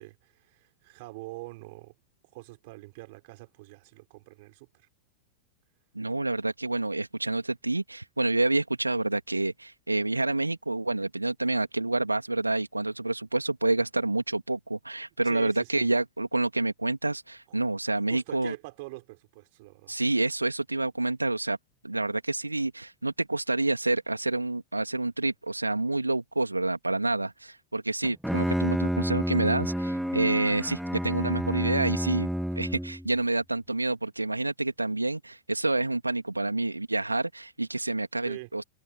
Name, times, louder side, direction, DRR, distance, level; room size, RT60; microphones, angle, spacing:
voice 1, 0.0-1.9 2.3-4.9 15.2-15.9 17.5-17.6 18.1-20.0 38.2-38.5, right 24 dB, 50° right, 5.6 m, -44 dB
voice 2, 5.9-18.5 19.9-21.6 21.8-32.3 32.6-38.6, right 2 dB, 85° right, 2.5 m, -28 dB
Bowed string instrument, 28.0-33.1, equal, ahead, 2.8 m, -29 dB
figure-of-eight pair, 90°, 0 cm